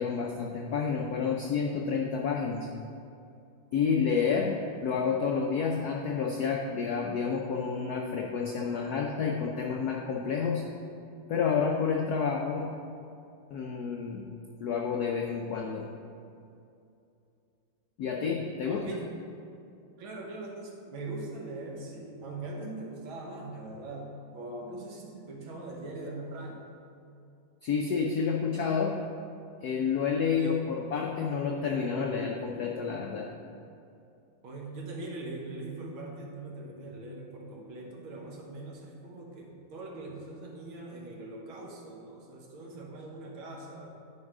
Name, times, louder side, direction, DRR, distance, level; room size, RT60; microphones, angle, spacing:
voice 1, 0.0-2.7 3.7-10.6 11.3-12.7 13.5-14.2 14.6-15.9 18.0-18.8 27.6-28.9 29.6-33.3, left 6 dB, 75° left, 0 dB, 0.8 m, -29 dB
voice 2, 18.6-19.1 20.0-26.7 30.3-30.6 34.4-43.9, right 2 dB, 70° right, -1 dB, 2.0 m, -41 dB
10.0 x 4.8 x 4.9 m, 2.6 s
omnidirectional pair, 2.4 m